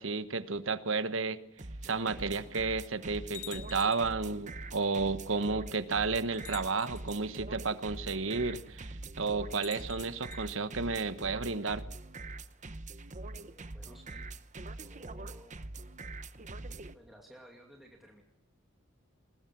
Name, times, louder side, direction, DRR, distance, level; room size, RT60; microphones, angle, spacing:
voice 1, 0.0-1.4 1.8-11.8, right 4 dB, 65° right, 12 dB, 1.2 m, -32 dB
sound 1, 1.6-16.9, right 2 dB, 35° right, 0.9 m, -44 dB
sound 2, 3.3-4.2 5.3-5.4 6.3-7.2 9.5-10.4, left 12 dB, 85° left, 2.1 m, -48 dB
voice 2, 13.4-14.3 14.7-15.5 16.9-18.2, equal, ahead, -1 dB, 2.7 m, -56 dB
21.5 x 20.0 x 6.1 m, 0.88 s
head